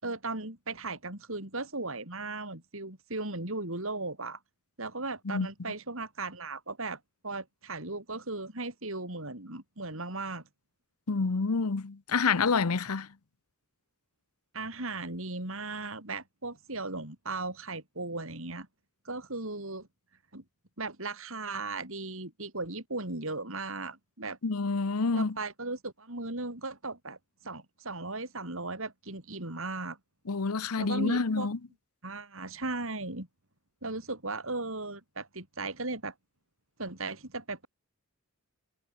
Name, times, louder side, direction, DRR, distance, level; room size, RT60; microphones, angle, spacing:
voice 1, 0.0-4.4 4.8-10.4 14.5-18.7 19.0-19.9 20.3-20.4 20.8-24.4 25.1-27.2 27.4-30.0 30.8-31.5 32.0-33.3 33.8-36.1 36.8-37.7, right 3 dB, 65° right, 4.4 m, -37 dB
voice 2, 11.1-13.1 24.4-25.4 30.3-31.6, left 4 dB, 85° left, 0.9 m, -28 dB
head